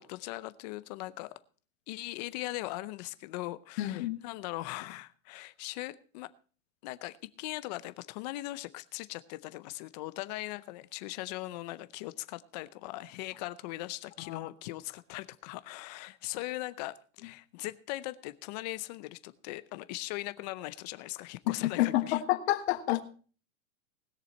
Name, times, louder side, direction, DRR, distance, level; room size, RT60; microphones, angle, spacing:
voice 1, 0.0-1.4 1.9-6.3 6.8-22.2, left 18 dB, 30° left, 15 dB, 0.6 m, -40 dB
voice 2, 3.8-4.2 14.2-14.5 21.5-23.0, left 15 dB, 50° left, 10 dB, 1.4 m, -29 dB
19.5 x 6.8 x 4.4 m, 0.40 s
supercardioid pair, 160°, 40 cm